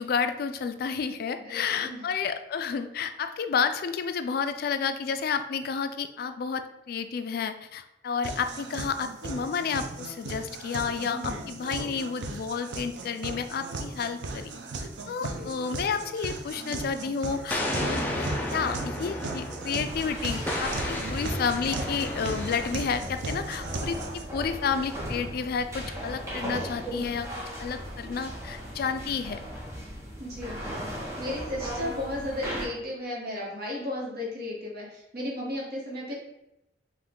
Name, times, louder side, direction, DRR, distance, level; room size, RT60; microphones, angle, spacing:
voice 1, 0.0-14.6 15.1-27.3 27.6-29.4, left 6 dB, 55° left, 9 dB, 0.3 m, -31 dB
voice 2, 1.4-2.0 11.1-11.5 15.2-15.5 30.2-30.6 31.2-36.1, left 1 dB, 60° right, -2 dB, 1.3 m, -34 dB
sound 1, 8.2-24.2, right 3 dB, 75° right, 0.6 m, -37 dB
Explosion, 17.5-19.9 20.5-23.0, left 1 dB, 10° left, 0.6 m, -32 dB
sound 2, 19.8-32.6, equal, 15° right, 1.0 m, -37 dB
4.9 x 2.6 x 3.6 m, 0.86 s
head